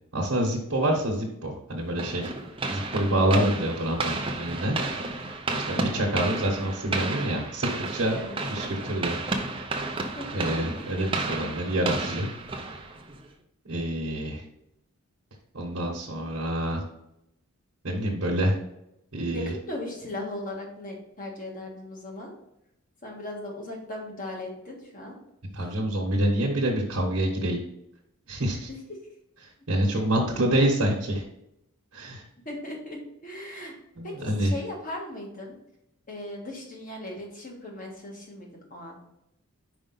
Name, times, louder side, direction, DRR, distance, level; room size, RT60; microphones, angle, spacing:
voice 1, 0.1-2.3 2.7-4.8 5.7-8.2 8.5-9.2 10.3-12.3 13.6-14.4 15.5-16.8 17.8-18.6 19.1-19.5 25.5-27.6 28.3-28.7 29.7-31.2 31.9-32.2 34.0-34.6, right 1 dB, 65° right, -3 dB, 1.2 m, -27 dB
sound 1, 2.0-13.3, right 3 dB, 25° right, 0.6 m, -32 dB
voice 2, 5.7-6.1 8.2-8.4 10.2-10.4 10.7-10.8 19.3-22.3 23.0-25.2 28.7-28.8 32.4-33.0 33.2-33.7 34.0-35.6 36.1-39.0, left 1 dB, 40° left, -1 dB, 1.5 m, -38 dB
5.1 x 5.0 x 4.0 m, 0.80 s
head